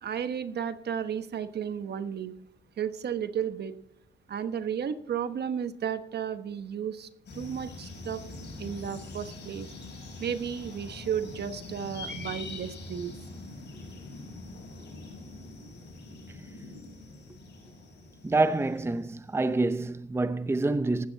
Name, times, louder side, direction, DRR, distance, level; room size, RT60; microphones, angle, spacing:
voice 1, 0.0-2.3 2.8-3.7 4.3-8.2 8.6-9.7 10.2-13.1, right 8 dB, 55° right, 1.2 m, -33 dB
sound 1, 7.3-19.4, left 2 dB, 60° left, 6.5 m, -44 dB
voice 2, 18.2-21.1, right 2 dB, 10° right, 0.7 m, -27 dB
15.5 x 12.0 x 4.0 m
cardioid pair, 90°, 20 cm